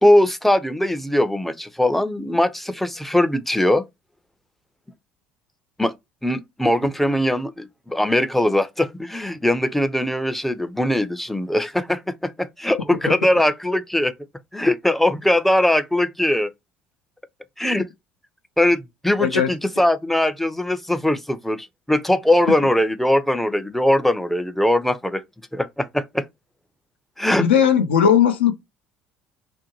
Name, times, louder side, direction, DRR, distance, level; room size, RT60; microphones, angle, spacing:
voice 1, 0.0-3.9 5.8-5.9 6.2-14.1 14.5-16.5 17.6-17.9 18.6-25.2 25.5-26.3 27.2-27.5, left 1 dB, 5° left, 0.4 m, -20 dB
voice 2, 19.2-19.5 27.4-28.5, left 8 dB, 75° left, 0.5 m, -17 dB
2.5 x 2.1 x 2.9 m
figure-of-eight pair, 60°, 6 cm